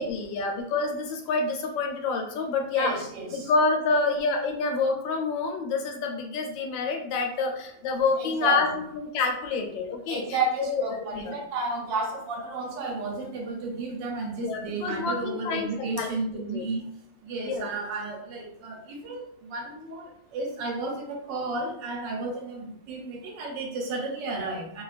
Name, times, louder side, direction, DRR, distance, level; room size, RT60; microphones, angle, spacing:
voice 1, 0.0-11.3 14.4-16.6 17.4-17.7, left 4 dB, 85° left, 2 dB, 1.3 m, -28 dB
voice 2, 2.7-3.5 8.2-8.6 10.1-16.9 17.2-24.8, right 3 dB, 80° right, 0 dB, 1.4 m, -32 dB
3.1 x 2.3 x 2.4 m, 0.73 s
omnidirectional pair, 2.0 m